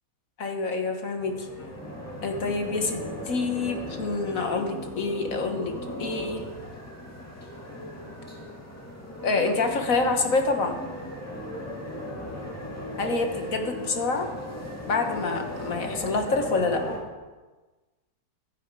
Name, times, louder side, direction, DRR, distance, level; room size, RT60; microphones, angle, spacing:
voice 1, 0.4-1.8 2.2-3.0 3.3-5.7 6.0-6.4 9.2-10.7 13.0-14.3 14.9-16.8, left 3 dB, 50° left, 4 dB, 1.7 m, -27 dB
sound 1, 1.2-17.0, left 1 dB, 10° left, 2.2 m, -37 dB
15.5 x 9.3 x 4.7 m, 1.3 s
omnidirectional pair, 1.9 m